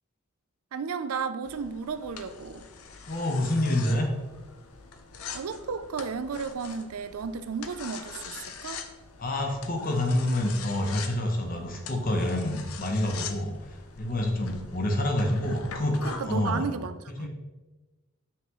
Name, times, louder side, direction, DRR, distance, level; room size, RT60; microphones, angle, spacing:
voice 1, 0.7-2.7 5.3-8.8 16.0-17.3, right 5 dB, 80° right, 12 dB, 0.4 m, -33 dB
sound 1, 1.4-16.5, left 5 dB, 80° left, 0.6 m, -43 dB
voice 2, 3.1-4.1 9.2-16.0 16.3-16.7 17.2-17.3, left 1 dB, 40° left, 2 dB, 0.9 m, -27 dB
5.7 x 5.7 x 3.1 m, 1.2 s
head